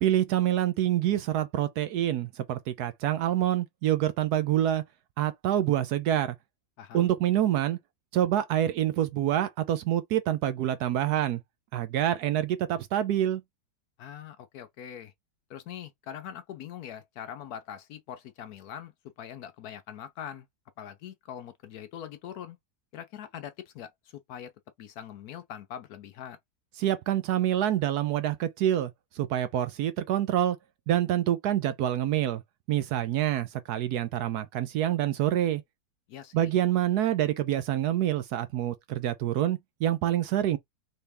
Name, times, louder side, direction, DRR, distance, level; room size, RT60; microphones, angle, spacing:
voice 1, 0.0-4.8 5.2-6.4 6.9-7.8 8.1-11.4 11.7-13.4 26.8-30.6 30.9-32.4 32.7-35.6 36.3-40.6, right 11 dB, 70° right, 1.0 m, -26 dB
voice 2, 6.8-7.1 14.0-15.1 15.5-18.9 19.2-20.5 20.8-22.6 22.9-24.5 24.8-26.4 36.1-36.5, left 9 dB, 70° left, 1.0 m, -42 dB
4.2 x 3.3 x 3.4 m
omnidirectional pair, 1.9 m